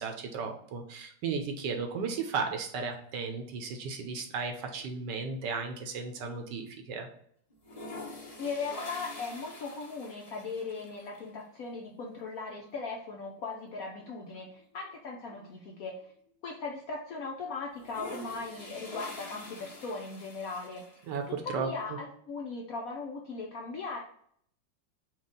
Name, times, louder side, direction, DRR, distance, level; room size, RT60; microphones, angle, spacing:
voice 1, 0.0-7.1 21.1-21.7, right 5 dB, 70° right, 4 dB, 1.2 m, -35 dB
sound 1, 3.5-4.3 4.6-6.7 6.9-7.0 7.5-11.2 12.7-12.8 13.2-13.3 13.6-16.0 16.5-16.6 17.6-21.3, left 2 dB, 40° left, 0.5 m, -46 dB
voice 2, 8.4-16.1 16.4-20.9 21.3-24.0, left 4 dB, 70° left, 0 dB, 0.8 m, -38 dB
4.8 x 2.4 x 3.7 m, 0.64 s
omnidirectional pair, 2.1 m